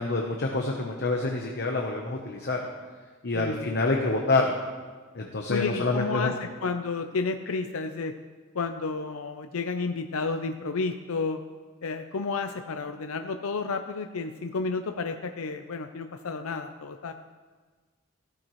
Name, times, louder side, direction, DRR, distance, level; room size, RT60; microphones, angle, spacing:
voice 1, 0.0-2.6 3.2-4.6 5.1-6.3, left 3 dB, 50° left, 1 dB, 1.0 m, -27 dB
voice 2, 3.3-3.8 5.5-8.1 8.5-11.4 11.8-17.1, left 4 dB, 90° left, 7 dB, 0.6 m, -31 dB
16.0 x 13.0 x 3.2 m, 1.4 s
head